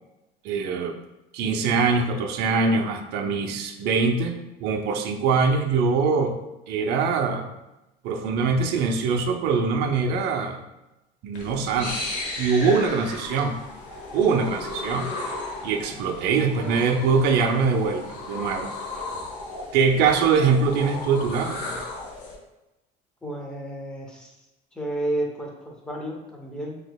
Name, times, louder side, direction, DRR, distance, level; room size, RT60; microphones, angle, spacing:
voice 1, 0.4-0.9 1.3-6.4 6.7-7.5 8.0-10.6 11.2-12.0 12.4-13.6 14.1-15.1 15.6-18.7 19.7-21.7, right 5 dB, 60° right, 3 dB, 0.5 m, -23 dB
sound 1, 11.3-22.4, left 2 dB, 80° left, 1.1 m, -35 dB
voice 2, 12.6-13.0 16.6-16.8 23.2-24.3 24.7-26.8, right 1 dB, 5° left, -1 dB, 0.6 m, -32 dB
6.0 x 2.8 x 2.2 m, 0.97 s
cardioid pair, 170°, 19 cm